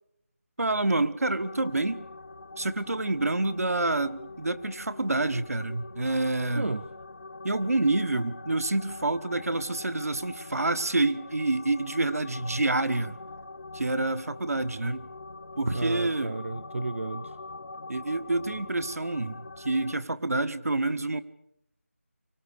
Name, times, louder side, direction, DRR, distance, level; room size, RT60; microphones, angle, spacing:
voice 1, 0.6-2.0 2.6-6.7 7.4-13.2 13.7-15.1 15.6-16.4 17.9-21.2, right 2 dB, 85° right, 1.3 m, -28 dB
sound 1, 1.4-20.0, left 3 dB, 50° left, 0.7 m, -44 dB
voice 2, 6.5-6.9 15.7-17.4, right 2 dB, 60° right, 0.7 m, -32 dB
24.5 x 16.5 x 6.7 m
figure-of-eight pair, 175°, 8 cm